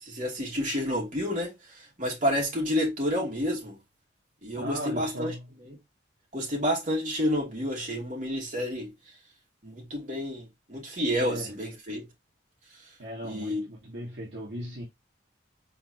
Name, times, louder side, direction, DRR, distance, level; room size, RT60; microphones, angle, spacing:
voice 1, 0.0-3.8 4.4-5.3 5.6-5.8 6.3-8.9 9.6-12.1 13.2-13.6, equal, 40° right, 2.4 m, -30 dB
voice 2, 4.6-5.5 11.1-11.5 13.0-14.8, equal, 65° right, 1.7 m, -37 dB
4.5 x 4.0 x 2.8 m
head